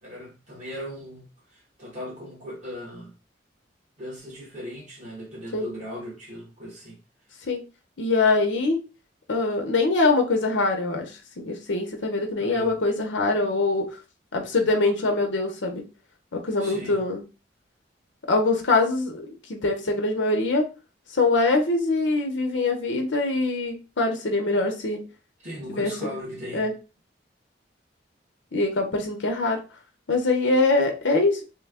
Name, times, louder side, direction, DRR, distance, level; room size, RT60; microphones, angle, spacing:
voice 1, 0.0-3.2 4.0-7.0 12.4-12.8 16.6-17.0 25.4-26.7, equal, 40° right, 1.3 m, -38 dB
voice 2, 8.0-8.8 9.3-11.1 11.4-14.0 14.3-15.8 16.3-17.2 18.3-20.7 21.1-25.1 25.7-26.1 26.5-26.7 28.5-29.6 30.1-31.4, left 3 dB, 80° left, 0.8 m, -23 dB
3.2 x 2.2 x 3.5 m
head